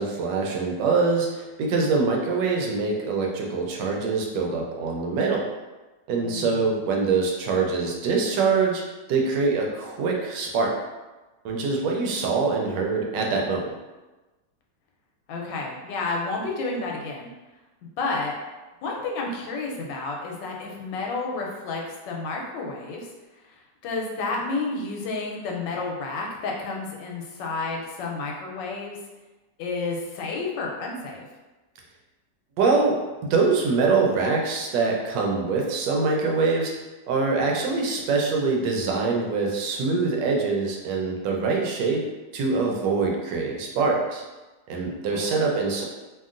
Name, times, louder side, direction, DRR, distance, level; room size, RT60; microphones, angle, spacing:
voice 1, 0.0-5.5 6.1-8.8 9.1-10.7 11.4-13.7 32.6-33.0 33.3-36.7 37.1-42.0 42.3-44.2 44.7-45.8, right 4 dB, 80° right, 0 dB, 1.2 m, -24 dB
voice 2, 6.2-6.6 15.3-17.3 18.0-18.4 18.8-23.1 23.4-29.0 29.6-31.2 45.1-45.6, left 3 dB, 90° left, -1 dB, 1.3 m, -31 dB
2.8 x 2.7 x 2.4 m, 1.1 s
omnidirectional pair, 1.9 m